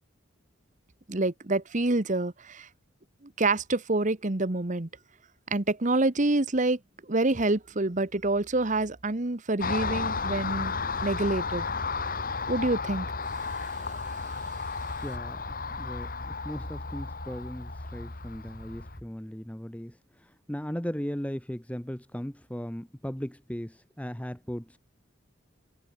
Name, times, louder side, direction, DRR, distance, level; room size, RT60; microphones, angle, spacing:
voice 1, 1.1-2.7 3.4-4.9 5.5-6.8 7.1-10.8 11.0-11.6 12.5-13.1, right 2 dB, 40° right, 1.1 m, -27 dB
Car passing by, 9.6-19.0, left 4 dB, 45° left, 1.9 m, -33 dB
voice 2, 15.0-24.8, equal, 5° left, 1.3 m, -37 dB
head